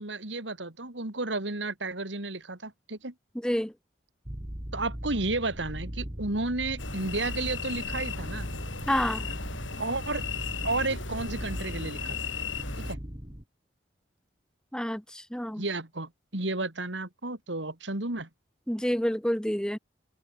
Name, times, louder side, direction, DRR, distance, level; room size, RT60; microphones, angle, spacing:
voice 1, 0.0-3.1 4.7-8.5 9.8-10.2 10.6-12.3 12.9-13.0 15.6-18.3, right 2 dB, 75° right, 3.0 m, -32 dB
voice 2, 3.4-3.7 8.9-9.2 14.7-15.6 18.7-19.8, equal, 5° left, 1.1 m, -28 dB
sound 1, 4.3-13.4, equal, 25° right, 2.6 m, -39 dB
sound 2, 6.8-12.9, left 5 dB, 85° left, 3.6 m, -36 dB
head